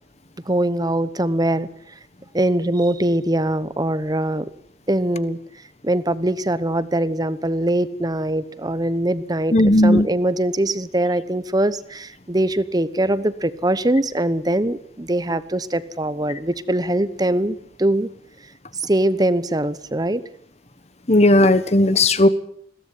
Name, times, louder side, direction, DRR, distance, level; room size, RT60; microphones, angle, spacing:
voice 1, 0.5-1.7 2.3-4.5 4.9-5.4 5.8-9.6 9.8-18.1 18.8-20.3, right 1 dB, 20° right, 15 dB, 1.0 m, -22 dB
voice 2, 9.5-10.1 21.1-22.3, left 1 dB, 35° left, 14 dB, 1.4 m, -15 dB
21.5 x 16.5 x 9.8 m, 0.64 s
head